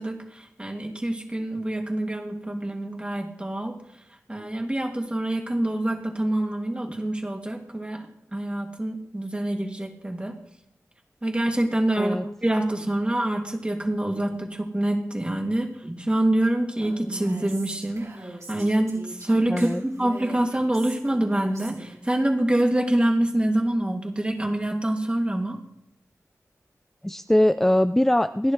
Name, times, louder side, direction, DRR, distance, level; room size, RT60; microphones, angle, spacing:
voice 1, 0.0-3.7 4.3-8.1 8.3-10.3 11.2-19.7 20.0-25.6, right 1 dB, 20° right, 2 dB, 2.5 m, -26 dB
Female speech woman speaking, 16.8-22.2, right 2 dB, 70° right, 5.9 m, -41 dB
voice 2, 19.5-19.8 27.0-28.5, left 1 dB, 5° left, 10 dB, 0.4 m, -21 dB
29.0 x 10.5 x 3.3 m, 0.77 s
wide cardioid pair, 85°, 6 cm